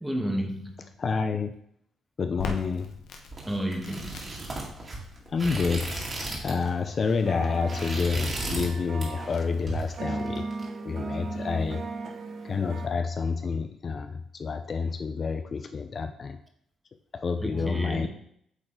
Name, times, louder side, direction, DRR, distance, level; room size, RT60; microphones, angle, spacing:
voice 1, 0.0-0.9 3.4-4.3 17.4-18.1, right 1 dB, 10° right, 3 dB, 1.3 m, -31 dB
voice 2, 1.0-1.5 2.2-2.9 5.3-6.0 6.4-10.5 10.8-11.9 12.4-16.4 17.1-18.1, left 5 dB, 45° left, 8 dB, 0.4 m, -28 dB
Crackle, 2.4-9.7, left 5 dB, 85° left, 1.0 m, -44 dB
sound 1, 3.3-6.7 7.0-7.2 7.5-8.7 9.0-9.4 9.7-10.6, right 2 dB, 30° right, 2.2 m, -35 dB
sound 2, 7.3-12.9, right 3 dB, 60° right, 0.8 m, -37 dB
8.1 x 3.9 x 3.8 m, 0.70 s
cardioid pair, 90°, 0 cm